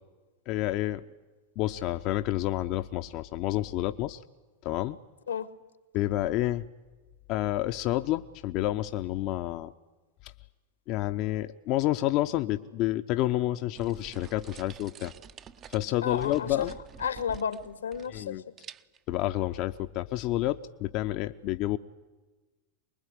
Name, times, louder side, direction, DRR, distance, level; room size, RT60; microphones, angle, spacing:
voice 1, 0.5-1.0 1.6-4.2 4.6-5.0 5.9-6.7 7.3-9.7 10.2-10.3 10.9-15.1 15.7-16.7 18.1-18.4 19.1-21.8, left 15 dB, 50° left, 9 dB, 0.8 m, -29 dB
sound 1, 13.7-18.3 18.6-19.1, right 7 dB, 35° right, 0.9 m, -48 dB
voice 2, 16.0-16.7 17.0-18.4, left 7 dB, 90° left, 11 dB, 1.8 m, -32 dB
24.5 x 21.0 x 9.9 m, 1.2 s
hypercardioid pair, 100°, 0 cm